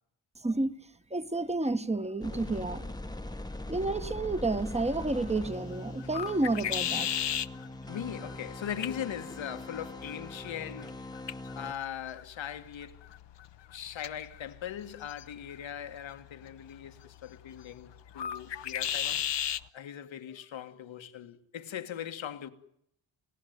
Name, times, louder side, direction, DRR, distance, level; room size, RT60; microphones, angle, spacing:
voice 1, 0.4-0.7 1.1-2.8 3.7-7.1, right 2 dB, 15° right, 1.2 m, -30 dB
sound 1, 2.2-11.7, left 2 dB, 10° left, 1.1 m, -41 dB
sound 2, 4.3-19.7, left 9 dB, 65° left, 1.0 m, -38 dB
voice 2, 7.9-11.1 11.6-13.0 13.7-19.2 19.7-22.5, left 9 dB, 85° left, 1.8 m, -40 dB
30.0 x 16.5 x 9.4 m
cardioid pair, 85°, 45 cm